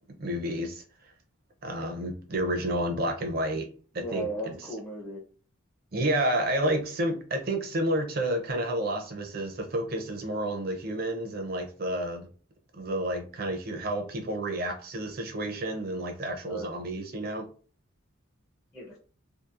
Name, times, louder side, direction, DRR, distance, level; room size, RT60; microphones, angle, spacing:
voice 1, 0.2-0.8 1.6-3.7 3.9-4.7 5.9-12.3 12.7-17.5, right 1 dB, 45° right, 3 dB, 0.5 m, -30 dB
voice 2, 4.0-5.2 16.4-16.7 18.7-19.0, right 2 dB, 15° left, -4 dB, 0.5 m, -36 dB
2.7 x 2.4 x 2.4 m, 0.40 s
head